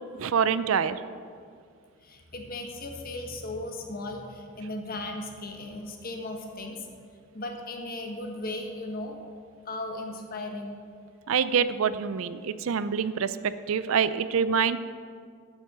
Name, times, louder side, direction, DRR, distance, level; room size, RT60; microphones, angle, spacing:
voice 1, 0.2-1.0 11.3-14.8, right 6 dB, 70° right, 14 dB, 0.4 m, -26 dB
voice 2, 2.0-6.9 7.3-9.2 9.6-10.8, left 2 dB, 40° left, 3 dB, 1.3 m, -36 dB
9.1 x 7.9 x 6.7 m, 2.2 s
head